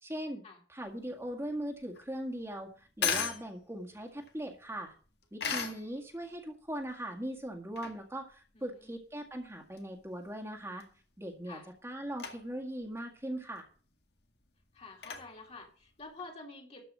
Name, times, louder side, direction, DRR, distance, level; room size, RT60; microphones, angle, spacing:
voice 1, 0.0-0.4 0.7-4.9 5.3-10.9 11.2-13.7, right 1 dB, 15° right, 1 dB, 1.8 m, -40 dB
sound 1, 0.8-16.3, left 6 dB, 65° left, 2.0 m, -41 dB
voice 2, 8.5-9.0 11.5-11.7 14.7-16.8, left 3 dB, 35° left, 2 dB, 2.6 m, -49 dB
13.0 x 5.2 x 8.5 m, 0.41 s
head